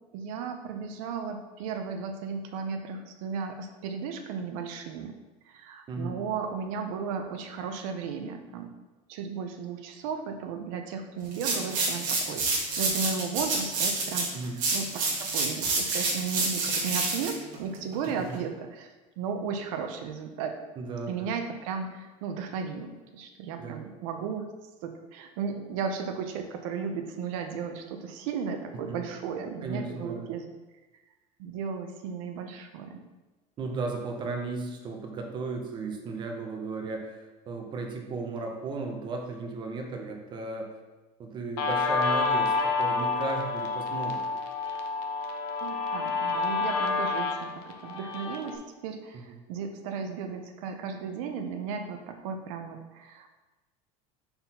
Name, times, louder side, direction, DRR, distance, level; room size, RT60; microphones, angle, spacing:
voice 1, 0.1-5.2 5.5-8.7 9.1-14.3 14.7-18.9 19.2-20.6 21.1-24.5 24.8-30.4 31.4-33.0 45.6-53.3, right 6 dB, 85° right, 5 dB, 0.7 m, -35 dB
sound 1, 11.3-18.4, right 3 dB, 55° right, 1.5 m, -28 dB
voice 2, 20.8-21.3 23.6-23.8 28.9-29.0 29.6-30.3 33.6-40.8 41.2-44.2 49.1-49.4, right 3 dB, 30° right, 2 dB, 0.8 m, -35 dB
Guitar, 41.6-48.6, left 4 dB, 60° left, 0.8 m, -29 dB
4.4 x 4.0 x 5.5 m, 1.2 s
cardioid pair, 160°, 17 cm